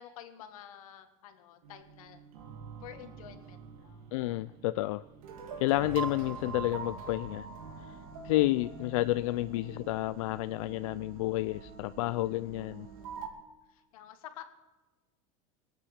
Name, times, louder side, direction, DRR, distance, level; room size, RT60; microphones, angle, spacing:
voice 1, 0.0-2.2 2.8-4.0 12.7-13.2 13.7-14.4, left 10 dB, 85° left, 8 dB, 1.7 m, -50 dB
sound 1, 1.6-13.3, right 5 dB, 75° right, 2.6 m, -45 dB
voice 2, 4.1-5.0 5.6-7.5 8.2-12.9, left 17 dB, 70° left, 14 dB, 0.4 m, -30 dB
22.0 x 8.9 x 6.5 m, 1.2 s
supercardioid pair, 175°, 18 cm